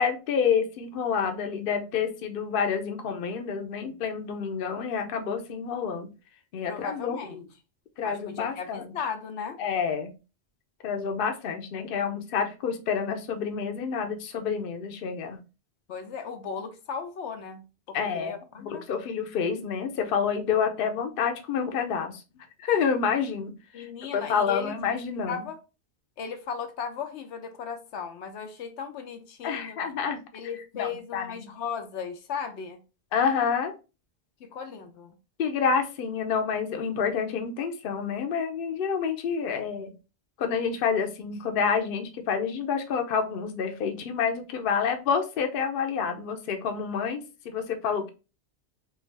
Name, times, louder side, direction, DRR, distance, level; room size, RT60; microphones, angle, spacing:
voice 1, 0.0-6.1 6.5-7.4 8.0-8.9 9.6-10.1 10.8-15.4 17.9-22.2 22.6-23.9 24.1-25.4 29.4-30.2 30.8-31.3 33.1-33.7 35.4-39.9 40.4-48.1, left 6 dB, 60° left, 0.8 m, -28 dB
voice 2, 6.7-7.4 8.0-9.6 15.9-18.8 23.7-24.8 25.3-25.6 26.2-29.8 30.3-32.8 34.4-35.2, left 6 dB, 85° left, 0.9 m, -36 dB
3.4 x 2.4 x 3.2 m
omnidirectional pair, 1.1 m